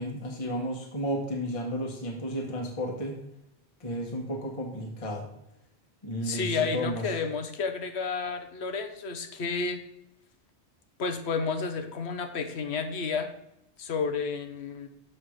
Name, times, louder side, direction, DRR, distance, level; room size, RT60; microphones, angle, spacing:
voice 1, 0.0-3.2 3.8-5.3 6.0-7.0, equal, 30° left, 0 dB, 1.2 m, -33 dB
voice 2, 6.2-9.8 11.0-13.3 13.8-14.9, left 5 dB, 75° left, 7 dB, 1.1 m, -31 dB
6.7 x 4.3 x 6.3 m, 0.82 s
omnidirectional pair, 1.1 m